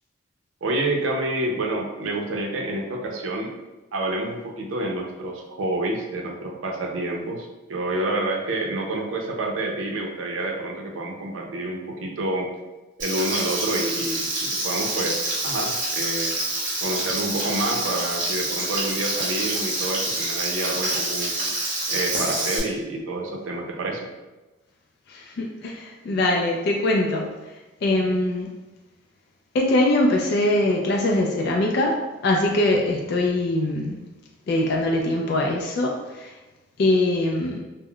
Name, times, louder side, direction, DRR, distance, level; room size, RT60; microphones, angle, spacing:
voice 1, 0.6-3.5 3.9-12.5 13.0-16.4 16.8-21.4 21.9-24.1, right 2 dB, 80° right, 1 dB, 0.5 m, -28 dB
Frying (food), 13.0-22.6, right 2 dB, 45° right, 0.8 m, -27 dB
voice 2, 25.1-27.3 27.8-28.5 29.5-32.0 32.2-34.0 34.5-36.3 36.8-37.6, left 1 dB, 55° left, 0 dB, 0.3 m, -22 dB
2.2 x 2.0 x 3.6 m, 1.1 s
head